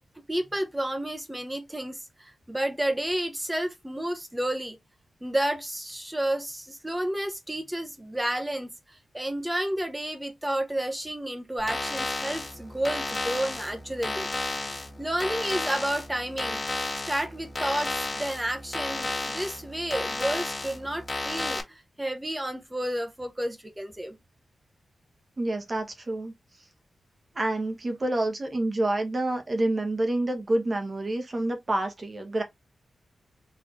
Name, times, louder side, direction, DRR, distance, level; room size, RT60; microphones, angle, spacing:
voice 1, 0.2-4.8 5.2-14.3 14.7-16.6 17.1-24.2, right 1 dB, 10° right, 1.1 m, -31 dB
sound 1, 11.6-21.6, left 2 dB, 20° left, 1.9 m, -33 dB
voice 2, 25.4-26.3 27.3-32.4, right 1 dB, 30° right, 1.3 m, -28 dB
4.2 x 3.5 x 3.0 m
wide cardioid pair, 120°, 0 cm